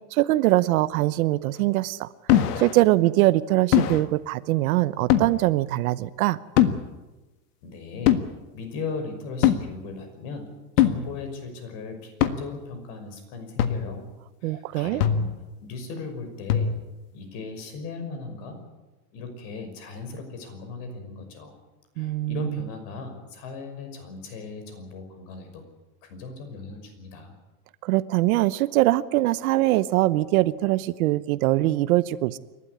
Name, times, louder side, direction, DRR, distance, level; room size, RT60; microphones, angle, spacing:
voice 1, 0.1-6.4 14.4-15.0 22.0-22.6 27.8-32.4, right 17 dB, 60° right, 15 dB, 1.0 m, -22 dB
sound 1, 2.3-2.8 3.7-4.0 5.1-5.4 6.6-6.9 8.1-8.2 9.4-9.7 10.8-11.1 12.2-12.4 13.6-13.9 15.0-15.4 16.5-16.9, left 10 dB, 70° left, 1.7 m, -21 dB
voice 2, 7.6-8.2 8.5-10.5 10.8-14.0 14.4-15.3 15.6-16.7 17.1-18.6 19.1-21.5 22.0-25.6 26.0-27.4, left 4 dB, 50° left, 6 dB, 5.9 m, -37 dB
28.5 x 12.5 x 9.8 m, 1.1 s
supercardioid pair, 160°, 47 cm